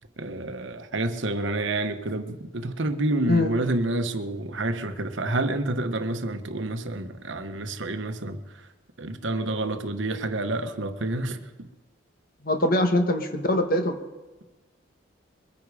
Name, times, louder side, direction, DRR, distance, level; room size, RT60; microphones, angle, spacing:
voice 1, 0.2-8.4 9.0-11.7, right 2 dB, 80° right, 1.2 m, -28 dB
voice 2, 12.4-14.0, left 1 dB, 45° left, 1.4 m, -22 dB
23.0 x 9.7 x 5.0 m
head